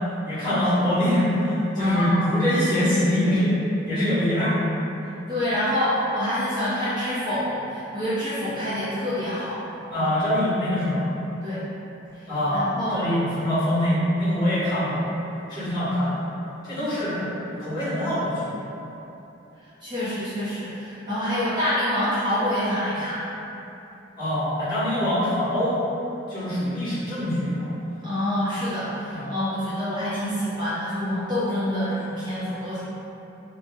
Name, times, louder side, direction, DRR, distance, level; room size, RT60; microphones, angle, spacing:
voice 1, 0.2-3.5 3.8-4.5 9.9-11.0 12.3-15.1 15.5-16.2 16.6-17.2 17.5-18.5 24.2-25.8 26.3-27.7 29.1-29.3, equal, 20° left, -15 dB, 1.2 m, -24 dB
voice 2, 1.8-2.2 5.3-9.6 11.4-11.6 12.1-13.0 16.9-17.2 19.8-23.2 28.0-32.8, left 1 dB, 25° right, -13 dB, 0.5 m, -27 dB
2.7 x 2.0 x 3.4 m, 3.0 s
head